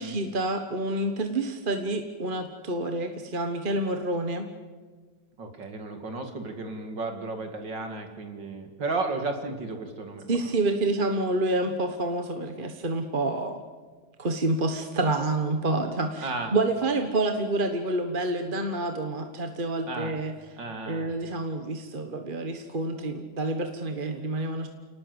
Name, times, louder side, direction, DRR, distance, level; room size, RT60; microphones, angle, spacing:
voice 1, 0.0-4.5 10.3-13.6 14.2-20.3 20.9-24.7, right 2 dB, 30° right, 6 dB, 1.3 m, -28 dB
voice 2, 5.4-10.5 16.2-16.5 19.9-20.1 20.6-21.1, right 3 dB, 65° right, 5 dB, 3.1 m, -34 dB
29.0 x 18.5 x 8.0 m, 1.5 s
omnidirectional pair, 2.1 m